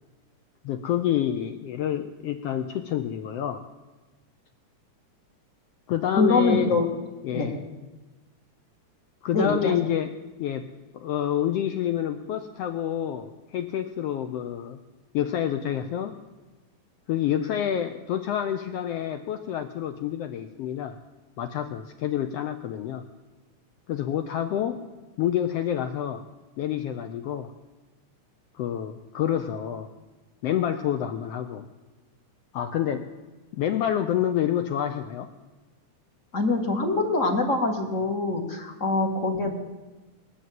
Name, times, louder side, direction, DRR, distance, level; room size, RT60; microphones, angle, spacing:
voice 1, 0.6-3.6 5.9-6.7 7.2-7.6 9.2-10.1 10.4-10.7 10.9-14.8 15.1-16.1 17.1-20.9 21.4-23.0 23.9-24.8 25.2-26.2 26.6-27.5 28.5-29.9 30.4-31.6 32.5-33.1 33.5-35.3, left 10 dB, 80° left, 7 dB, 1.4 m, -28 dB
voice 2, 6.1-6.9 7.3-7.5 9.3-9.7 36.3-39.5, left 3 dB, 35° left, 3 dB, 1.5 m, -24 dB
20.0 x 6.8 x 9.2 m, 1.2 s
omnidirectional pair, 3.5 m